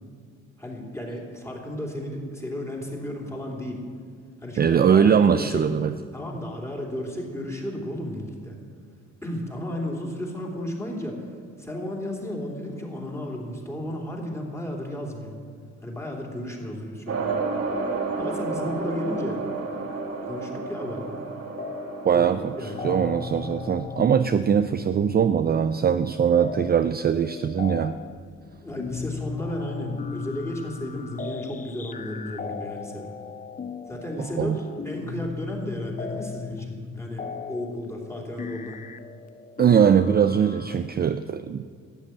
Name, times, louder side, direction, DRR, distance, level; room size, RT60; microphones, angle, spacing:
voice 1, 0.6-3.9 4.4-5.6 6.1-8.6 9.2-11.2 11.6-15.3 15.8-17.4 18.2-19.4 20.2-21.2 22.1-22.3 22.6-22.9 28.6-33.1 33.9-38.8, left 1 dB, 10° left, -1 dB, 3.0 m, -33 dB
voice 2, 4.6-5.9 22.0-28.0 34.2-34.6 39.6-41.6, right 7 dB, 30° right, 10 dB, 0.4 m, -21 dB
sound 1, 17.1-23.8, right 3 dB, 55° right, 1.9 m, -31 dB
sound 2, 21.6-22.2 22.5-40.7, left 5 dB, 25° left, 0.5 m, -37 dB
12.5 x 8.2 x 8.8 m, 2.1 s
cardioid pair, 90°, 30 cm